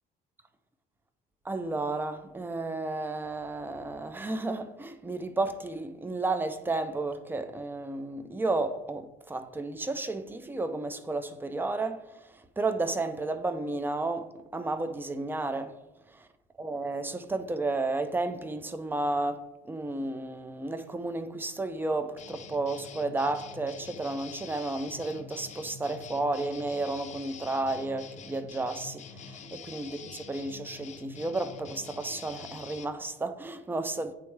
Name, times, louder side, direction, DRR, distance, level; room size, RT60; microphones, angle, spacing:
voice 1, 1.5-12.0 12.6-15.8 16.6-34.1, right 2 dB, 10° right, 0.5 m, -32 dB
sound 1, 22.2-32.9, left 6 dB, 45° left, 0.6 m, -46 dB
9.1 x 3.5 x 3.2 m
cardioid pair, 110°, 17 cm